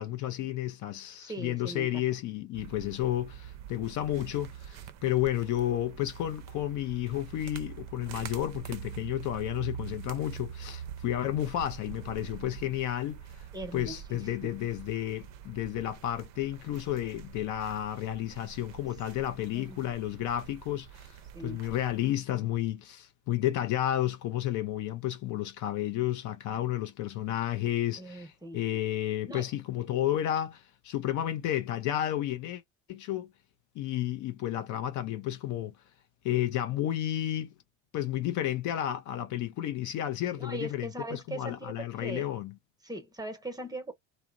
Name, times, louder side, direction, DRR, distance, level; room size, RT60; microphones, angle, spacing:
voice 1, 0.0-13.5 13.7-32.6 32.9-33.3 33.8-35.7 36.2-37.5 37.9-42.5, left 12 dB, 50° left, 0.5 m, -32 dB
voice 2, 1.2-2.0 13.5-14.6 19.5-19.8 21.3-21.6 28.0-28.6 29.3-29.5 40.4-42.2 42.8-43.9, right 1 dB, 10° right, 0.9 m, -40 dB
sound 1, 2.5-22.1, right 8 dB, 45° right, 0.5 m, -45 dB
2.5 x 2.1 x 2.4 m
hypercardioid pair, 75°, 38 cm